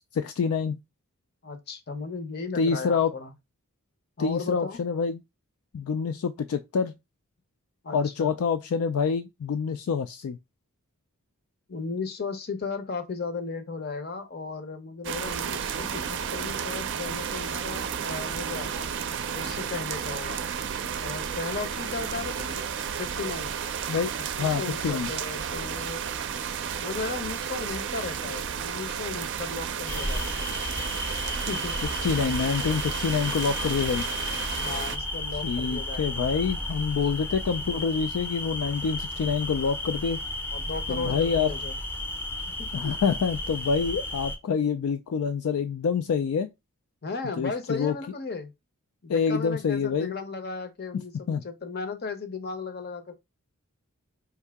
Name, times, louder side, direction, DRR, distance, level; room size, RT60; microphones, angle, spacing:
voice 1, 0.1-0.8 2.6-3.1 4.2-5.2 5.7-6.9 7.9-10.4 23.9-24.1 24.4-25.1 32.0-34.0 35.4-40.2 40.9-41.5 42.7-46.5 47.4-47.9 49.1-50.1 51.3-51.4, left 6 dB, 70° left, 0.3 m, -26 dB
voice 2, 1.4-3.3 4.2-4.8 7.8-8.3 11.7-18.9 19.3-20.4 21.0-22.6 23.0-23.5 24.2-26.2 26.8-30.3 31.5-31.8 32.2-32.3 34.5-36.1 40.5-41.8 42.6-43.0 47.0-48.5 49.0-53.1, left 4 dB, 45° left, 0.8 m, -35 dB
sound 1, 15.0-35.0, right 7 dB, 55° right, 0.4 m, -32 dB
sound 2, 29.9-44.4, left 1 dB, 10° left, 0.6 m, -33 dB
4.7 x 2.7 x 3.4 m
head